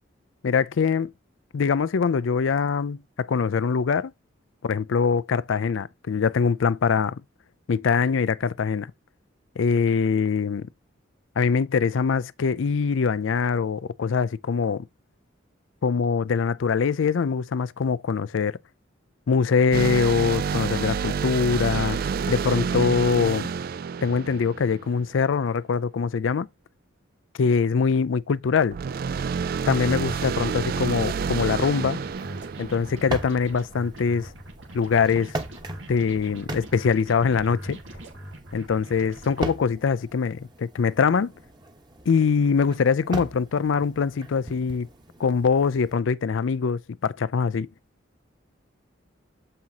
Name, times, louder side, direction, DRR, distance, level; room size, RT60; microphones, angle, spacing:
voice 1, 0.4-1.1 1.5-4.1 4.6-7.2 7.7-8.9 9.6-10.7 11.4-14.9 15.8-18.6 19.3-22.0 22.3-23.5 24.0-26.5 27.4-28.7 29.7-32.0 32.6-34.3 34.7-35.4 35.9-37.8 38.5-41.3 42.1-44.9 45.2-47.7, left 5 dB, 75° left, 0.4 m, -23 dB
sound 1, 19.7-25.2 28.7-33.5, right 6 dB, 50° right, 0.3 m, -29 dB
sound 2, 29.5-46.0, right 1 dB, 20° right, 1.1 m, -40 dB
sound 3, 29.8-39.4, right 1 dB, 75° right, 2.1 m, -42 dB
7.6 x 5.6 x 2.9 m
head